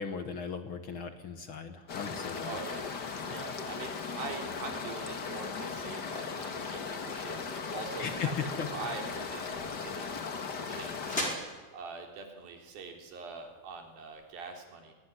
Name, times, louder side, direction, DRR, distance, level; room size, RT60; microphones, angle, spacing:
voice 1, 0.0-2.5 3.3-3.4 8.0-8.3 8.6-8.7, left 6 dB, 55° left, 8 dB, 1.4 m, -37 dB
sound 1, 1.9-11.4, left 5 dB, 40° left, 1.5 m, -38 dB
voice 2, 2.4-2.9 3.3-8.3 8.6-10.2 10.6-11.4 11.7-14.9, right 4 dB, 80° right, 3 dB, 5.2 m, -43 dB
sound 2, 9.5-14.3, left 1 dB, 15° left, 4.8 m, -43 dB
22.5 x 18.0 x 9.9 m, 1.4 s
omnidirectional pair, 4.2 m